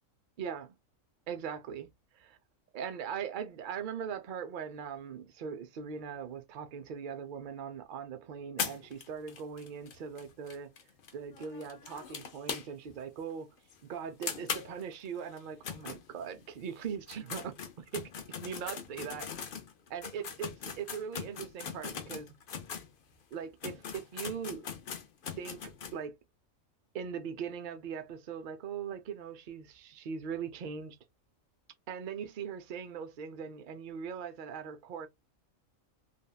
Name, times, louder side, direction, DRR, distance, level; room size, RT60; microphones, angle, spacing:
voice 1, 0.4-0.7 1.3-1.9 2.7-10.7 11.1-13.5 13.9-18.1 18.4-19.3 19.9-22.3 23.3-24.7 25.4-26.2 26.9-31.0 31.9-35.1, right 7 dB, 55° right, 0.6 m, -40 dB
sound 1, 8.6-13.0 13.3-13.4 13.7-13.8 14.2-16.5 17.0-22.9 23.3-23.4 23.6-26.0, left 6 dB, 50° left, 0.7 m, -41 dB
3.4 x 2.2 x 2.3 m
omnidirectional pair, 1.4 m